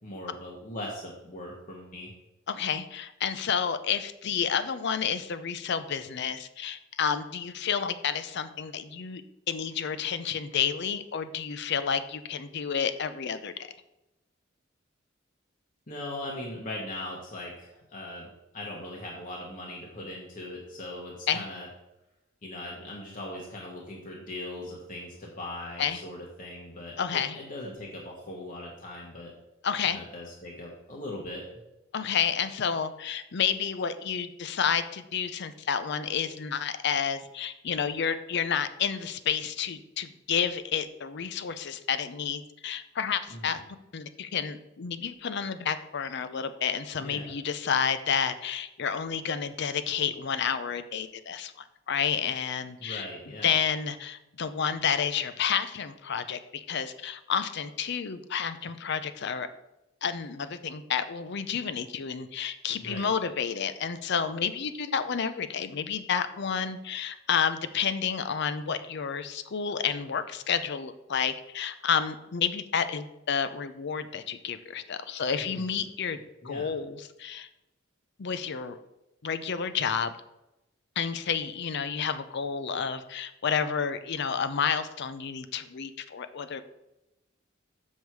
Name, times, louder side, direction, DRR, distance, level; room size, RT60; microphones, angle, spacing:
voice 1, 0.0-2.1 15.9-21.7 22.4-29.3 29.8-31.5 43.3-43.6 47.0-47.3 52.8-53.6 62.8-63.1 75.4-75.8 76.4-76.7, left 1 dB, 40° left, -2 dB, 1.3 m, -40 dB
voice 2, 2.5-9.2 9.5-13.7 21.3-21.4 25.8-26.0 27.0-27.4 29.6-30.0 31.9-43.6 43.9-53.1 53.4-59.5 60.0-76.2 76.4-77.5 78.2-78.8 79.2-80.1 81.0-86.6, left 7 dB, 60° left, 11 dB, 0.5 m, -30 dB
7.2 x 6.4 x 4.6 m, 0.94 s
head